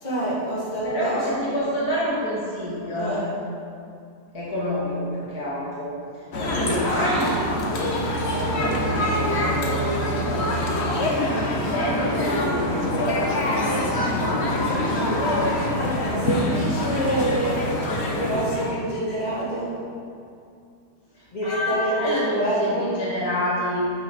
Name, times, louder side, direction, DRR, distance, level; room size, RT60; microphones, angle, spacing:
voice 1, 0.0-1.7 2.9-3.3 6.3-6.6 15.7-17.7 18.1-19.8 21.3-23.1, right 1 dB, 25° left, -8 dB, 2.4 m, -27 dB
voice 2, 0.8-3.2 4.3-6.0 6.5-7.4 8.3-11.3 11.7-15.1 21.1-23.9, equal, 65° left, -7 dB, 2.2 m, -28 dB
sound 1, 6.3-18.8, left 1 dB, 45° left, 1.1 m, -25 dB
9.4 x 7.7 x 4.1 m, 2.4 s
omnidirectional pair, 1.8 m